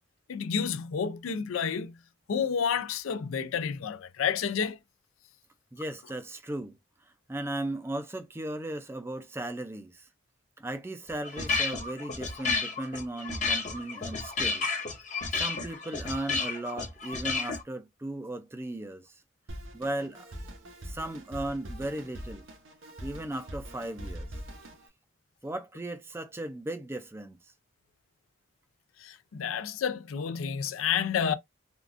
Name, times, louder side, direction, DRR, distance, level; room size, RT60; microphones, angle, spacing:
voice 1, 0.3-2.0 2.3-4.8 29.0-31.3, left 7 dB, 85° left, 0.4 m, -30 dB
voice 2, 5.7-6.8 7.3-10.1 10.6-14.7 15.3-19.2 19.7-20.3 20.8-22.4 23.0-24.3 25.4-27.5, right 1 dB, 10° right, 0.3 m, -36 dB
sound 1, 11.1-17.6, left 4 dB, 35° left, 0.7 m, -31 dB
Drum kit, 19.5-24.9, equal, 85° right, 0.8 m, -43 dB
3.5 x 2.4 x 2.4 m
head